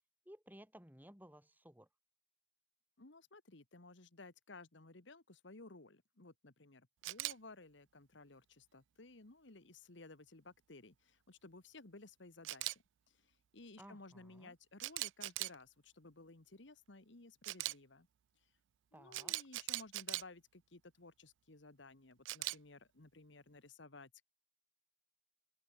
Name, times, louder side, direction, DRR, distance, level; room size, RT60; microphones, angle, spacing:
voice 1, 0.3-1.9 13.8-14.5 18.9-19.3, equal, 10° right, 6.1 m, -58 dB
voice 2, 3.0-18.1 18.4-18.5 18.9-24.2, left 3 dB, 70° left, 1.6 m, -57 dB
Camera, 7.0-7.3 12.4-12.7 14.8-15.5 17.4-17.7 19.1-20.2 22.3-22.6, right 19 dB, 70° right, 0.3 m, -39 dB
open air
head